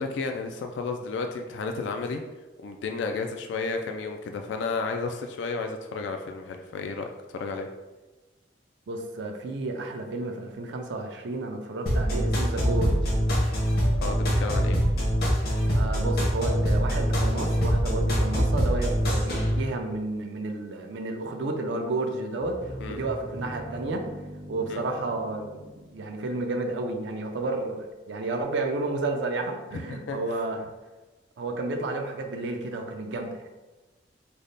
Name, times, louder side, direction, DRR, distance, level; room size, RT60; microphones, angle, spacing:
voice 1, 0.0-2.2 2.6-7.7 14.0-14.8 22.8-23.0 24.7-24.8 29.7-30.2, left 4 dB, 80° left, 4 dB, 0.3 m, -32 dB
voice 2, 8.9-13.0 15.7-24.1 24.5-30.6 31.4-33.5, right 2 dB, 75° right, 4 dB, 0.4 m, -31 dB
sound 1, 11.9-19.5, equal, 55° left, 0.8 m, -24 dB
sound 2, 22.4-27.2, equal, 25° right, 0.5 m, -42 dB
3.4 x 2.1 x 3.9 m, 1.2 s
head